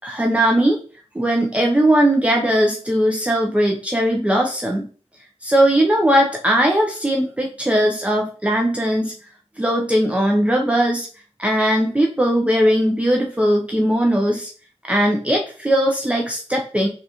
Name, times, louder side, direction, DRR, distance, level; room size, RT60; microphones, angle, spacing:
voice 1, 0.0-0.8 1.1-4.9 5.4-9.1 9.6-11.1 11.4-14.5 14.9-16.9, right 1 dB, 10° right, 0 dB, 0.6 m, -19 dB
3.8 x 2.4 x 2.9 m, 0.40 s
cardioid pair, 55°, 11 cm